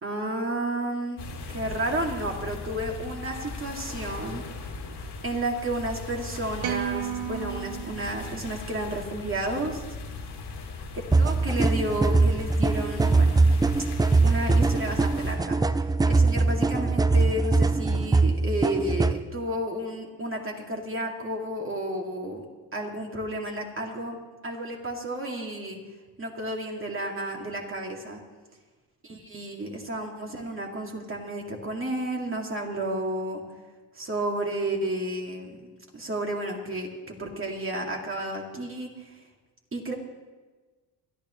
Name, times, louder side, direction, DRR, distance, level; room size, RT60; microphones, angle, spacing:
voice 1, 0.0-4.4 5.2-9.8 11.2-13.4 14.2-15.6 16.1-22.4 22.7-24.2 24.4-25.8 26.2-28.2 29.0-33.4 33.9-35.6 35.9-39.1 39.7-39.9, right 1 dB, 30° right, 0 dB, 2.7 m, -32 dB
sound 1, 1.2-15.4, left 4 dB, 75° left, 2.9 m, -38 dB
sound 2, 6.6-9.0, right 12 dB, 70° right, 0.9 m, -34 dB
sound 3, 11.1-19.2, right 3 dB, 10° right, 0.3 m, -22 dB
23.0 x 12.5 x 3.3 m, 1.3 s
cardioid pair, 90°, 41 cm